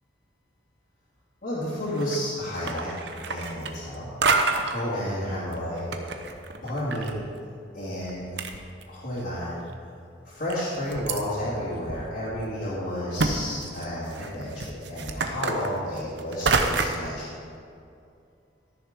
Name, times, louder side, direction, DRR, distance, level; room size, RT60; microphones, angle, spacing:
voice 1, 1.4-2.9 3.3-4.1 4.7-5.9 6.2-6.3 6.5-7.2 7.7-8.2 8.9-9.6 10.2-17.4, equal, 45° left, -11 dB, 2.6 m, -31 dB
sound 1, 1.9-2.3 2.6-4.0 4.2-4.8 5.5-7.1 7.4-7.5 8.1-8.2 8.4-9.2 9.7-9.8 10.5-11.2 11.9-12.0 12.4-12.5 13.2-13.3 13.6-17.1, right 3 dB, 60° right, 0.8 m, -27 dB
13.5 x 6.9 x 5.2 m, 2.4 s
head